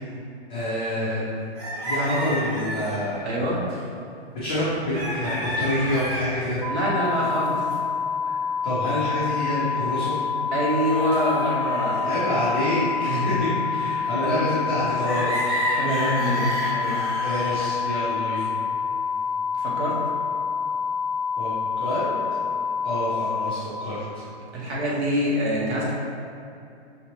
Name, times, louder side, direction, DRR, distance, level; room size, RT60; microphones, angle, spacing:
voice 1, 0.5-1.4 1.8-3.4 4.3-6.6 8.6-10.2 12.0-15.4 17.2-18.5 21.4-22.1 22.8-24.2, left 1 dB, 10° left, -14 dB, 0.4 m, -27 dB
sound 1, 1.6-3.0 4.9-6.4 6.9-7.8 8.2-8.5 8.9-10.1 10.7-12.2 13.0-14.3 14.7-17.9, equal, 25° right, 1.2 m, -31 dB
voice 2, 3.2-3.6 6.7-7.6 10.5-12.1 13.0-13.3 14.2-14.4 15.8-17.1 19.5-20.0 24.5-25.9, equal, 75° right, -5 dB, 1.4 m, -25 dB
sound 2, 6.6-23.5, left 6 dB, 55° right, 1.0 m, -27 dB
5.7 x 2.9 x 3.0 m, 2.6 s
hypercardioid pair, 170°, 33 cm